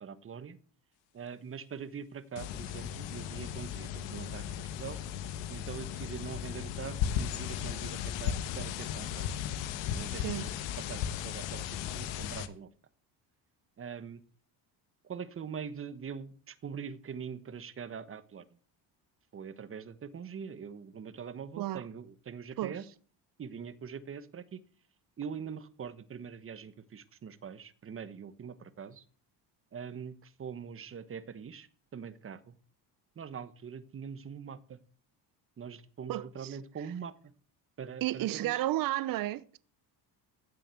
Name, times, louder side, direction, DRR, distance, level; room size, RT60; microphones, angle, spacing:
voice 1, 0.0-0.6 1.1-5.0 5.5-9.3 9.9-12.7 13.8-14.2 15.0-18.6 19.3-22.9 23.4-24.6 25.2-29.0 29.7-32.6 33.1-34.8 35.6-37.3 37.8-38.6, right 7 dB, 30° right, 1.2 m, -43 dB
sound 1, 2.4-12.5, left 9 dB, 90° left, 1.4 m, -36 dB
voice 2, 10.1-10.5 21.6-21.8 22.6-22.8 36.1-36.6 38.0-39.6, right 15 dB, 50° right, 0.8 m, -32 dB
15.0 x 7.6 x 7.6 m
cardioid pair, 130°, 43 cm